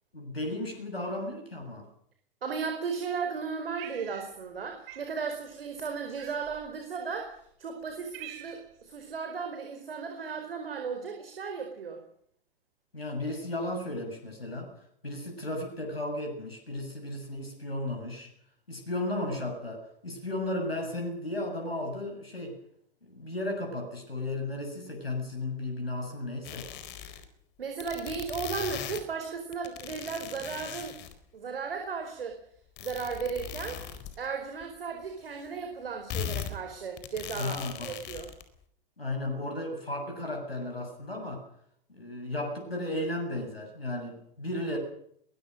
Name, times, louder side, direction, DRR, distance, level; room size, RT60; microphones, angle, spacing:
voice 1, 0.1-1.9 12.9-14.7 15.0-18.3 18.7-22.6 23.0-26.7 37.3-37.9 39.0-41.4 42.0-44.8, left 1 dB, 90° left, 3 dB, 7.4 m, -34 dB
voice 2, 2.4-12.0 27.6-30.9 31.3-32.4 32.8-33.8 34.2-38.3, right 5 dB, 75° right, 5 dB, 4.8 m, -35 dB
Cat, 3.8-4.6 4.9-5.1 6.2-6.7 7.4-7.5 7.8-8.8, right 12 dB, 40° right, 5.8 m, -45 dB
sound 1, 26.4-27.3 27.8-29.0 29.5-31.1 32.8-34.2 34.6-34.7 35.0-35.1 36.1-36.5 37.0-38.4, left 10 dB, 35° left, 4.3 m, -39 dB
22.5 x 21.5 x 6.6 m, 0.67 s
figure-of-eight pair, 100°, 29 cm